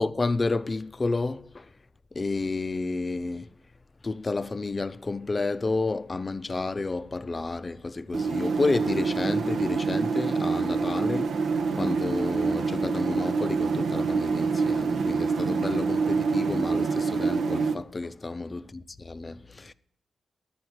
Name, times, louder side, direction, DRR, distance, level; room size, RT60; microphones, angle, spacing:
voice 1, 0.0-1.7 2.1-3.5 4.0-18.6 19.1-19.7, left 3 dB, 30° left, 0.5 m, -30 dB
sound 1, 8.1-17.7, right 4 dB, 80° right, 0.9 m, -26 dB
11.5 x 8.6 x 6.3 m
cardioid pair, 95°, 0 cm